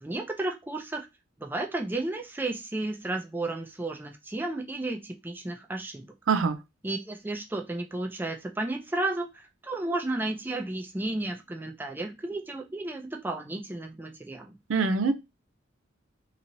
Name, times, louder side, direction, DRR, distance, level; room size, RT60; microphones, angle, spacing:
voice 1, 0.0-1.1 1.4-6.1 6.8-14.6, right 2 dB, 10° right, 0.4 m, -33 dB
voice 2, 6.3-6.6 14.7-15.1, right 4 dB, 85° right, 0.5 m, -23 dB
3.0 x 2.8 x 2.6 m
head